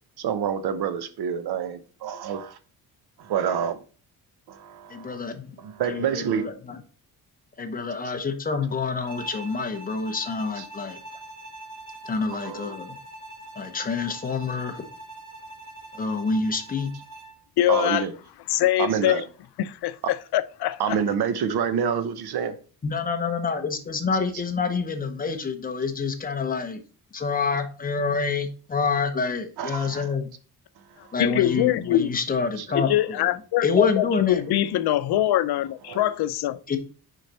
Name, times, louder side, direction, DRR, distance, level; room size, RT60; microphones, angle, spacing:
voice 1, 0.2-2.6 3.2-3.8 4.5-5.2 5.6-6.5 10.6-10.7 12.3-12.7 17.7-18.1 18.8-19.2 20.8-22.5 29.6-30.1 30.8-31.1 32.6-32.7 35.9-36.0, right 7 dB, 80° right, 1.0 m, -28 dB
voice 2, 4.9-5.5 5.9-6.8 7.6-11.0 12.0-13.0 13.5-14.8 15.9-16.9 22.8-26.8 27.1-30.3 31.1-33.3 33.6-34.4 36.7-36.8, left 4 dB, 20° left, 0.9 m, -27 dB
Bowed string instrument, 9.1-17.4, right 1 dB, 55° right, 1.6 m, -43 dB
voice 3, 17.6-18.0 18.5-19.2 19.6-20.0 20.3-21.0 31.2-32.1 32.7-36.6, left 13 dB, 80° left, 0.6 m, -23 dB
6.4 x 5.1 x 4.3 m
cardioid pair, 175°, 38 cm